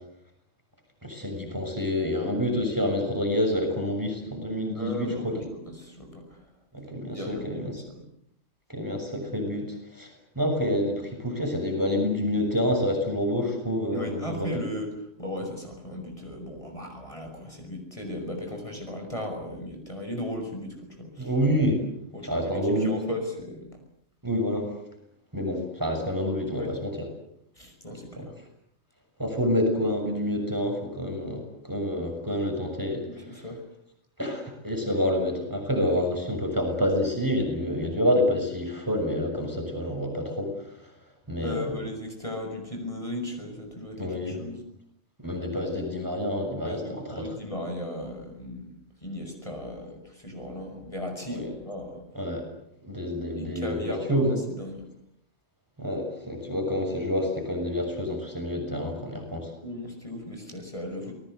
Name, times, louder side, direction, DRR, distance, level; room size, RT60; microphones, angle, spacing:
voice 1, 1.0-5.4 6.7-7.8 8.7-14.5 21.2-21.8 22.2-23.0 24.2-24.7 25.3-26.9 28.2-28.3 29.2-33.0 33.3-33.4 34.2-40.5 41.3-41.8 44.0-44.4 45.2-47.3 51.3-51.5 52.1-52.4 52.8-54.4 55.8-59.5, equal, 15° right, 3 dB, 6.6 m, -28 dB
voice 2, 4.7-6.2 7.0-7.6 7.9-8.0 13.9-14.9 15.2-21.3 22.1-23.8 26.6-26.7 27.6-28.3 33.1-33.6 41.4-44.6 46.6-48.7 49.0-50.0 50.2-52.0 53.4-54.2 54.6-54.9 59.6-61.1, left 1 dB, 25° left, 3 dB, 6.2 m, -36 dB
29.0 x 20.0 x 8.1 m, 0.73 s
omnidirectional pair, 1.3 m